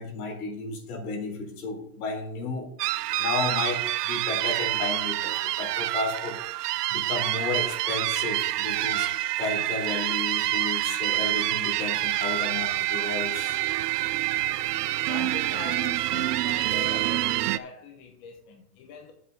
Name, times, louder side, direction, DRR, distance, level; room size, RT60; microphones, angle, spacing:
voice 1, 0.0-2.7 3.2-9.1 9.4-13.6, left 3 dB, 70° left, 4.1 m, -33 dB
sound 1, 2.8-17.6, right 16 dB, 85° right, 0.6 m, -27 dB
voice 2, 14.5-19.1, left 5 dB, 30° left, 1.1 m, -42 dB
7.7 x 5.9 x 7.1 m
supercardioid pair, 170°, 45 cm